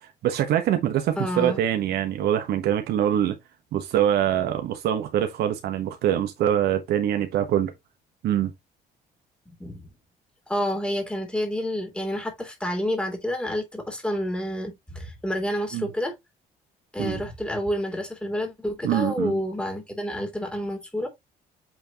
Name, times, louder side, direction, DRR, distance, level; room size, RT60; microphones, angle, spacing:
voice 1, 0.0-3.4 3.7-7.7 8.2-8.5 15.7-15.9 17.0-17.2 18.8-19.4, right 10 dB, 70° right, 1.1 m, -24 dB
voice 2, 1.2-1.6 9.6-9.9 10.5-16.1 16.9-21.1, equal, 5° left, 3.0 m, -29 dB
8.2 x 4.6 x 2.9 m
cardioid pair, 110°, 17 cm